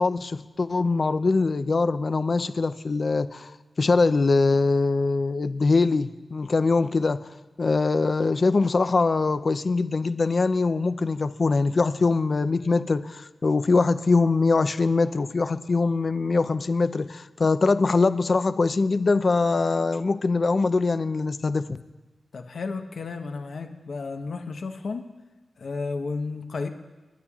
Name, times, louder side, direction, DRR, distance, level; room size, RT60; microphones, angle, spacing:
voice 1, 0.0-3.5 3.8-7.3 7.6-21.8, left 3 dB, 55° left, 12 dB, 0.6 m, -23 dB
voice 2, 22.3-25.1 25.6-26.7, left 4 dB, 70° left, 5 dB, 1.0 m, -32 dB
29.0 x 9.8 x 2.4 m, 1.2 s
cardioid pair, 55°, 0 cm